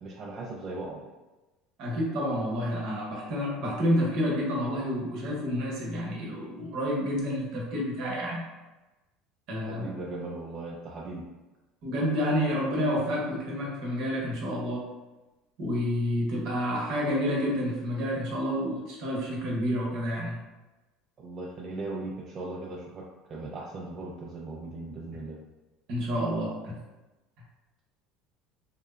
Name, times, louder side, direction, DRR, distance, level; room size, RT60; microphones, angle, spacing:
voice 1, 0.0-1.1 9.6-11.2 21.2-25.4, right 2 dB, 40° right, -3 dB, 0.4 m, -38 dB
voice 2, 1.8-8.4 9.5-9.9 11.8-14.9 15.6-20.4 25.9-26.8, equal, 65° right, -3 dB, 0.9 m, -29 dB
2.7 x 2.0 x 2.3 m, 1.1 s
supercardioid pair, 95°, 0 cm